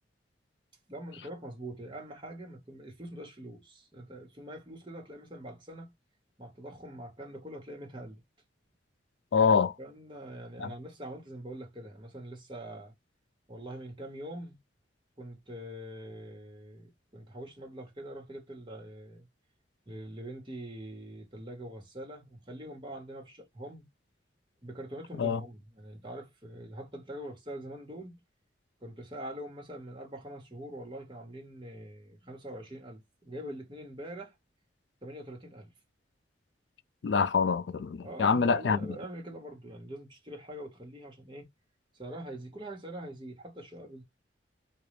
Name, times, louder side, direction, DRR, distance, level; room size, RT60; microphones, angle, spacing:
voice 1, 0.9-5.9 6.4-8.2 9.8-12.9 13.5-14.6 15.2-19.3 19.9-23.9 24.6-28.2 28.8-34.3 35.0-35.7 38.0-41.5 41.9-44.0, right 1 dB, 25° right, 1.3 m, -44 dB
voice 2, 9.3-9.7 10.6-10.7 25.2-25.4 37.0-38.8, left 5 dB, 75° left, 0.4 m, -25 dB
3.8 x 2.4 x 3.1 m
head